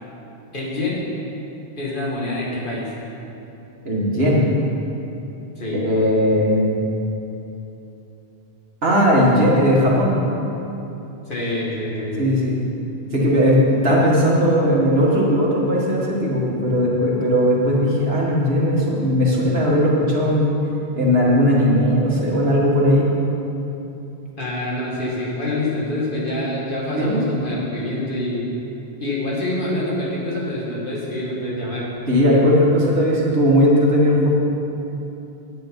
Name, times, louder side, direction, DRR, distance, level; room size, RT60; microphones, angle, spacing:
voice 1, 0.5-1.1 1.8-2.9 5.6-5.8 11.3-12.4 24.4-28.5 29.0-31.9, left 1 dB, 55° left, -5 dB, 2.4 m, -26 dB
voice 2, 3.9-4.5 5.7-6.8 8.8-10.2 12.2-12.6 13.1-20.6 21.0-23.1 27.0-27.2 32.1-34.3, equal, 75° right, -4 dB, 2.1 m, -17 dB
10.5 x 8.5 x 5.3 m, 3.0 s
omnidirectional pair, 1.0 m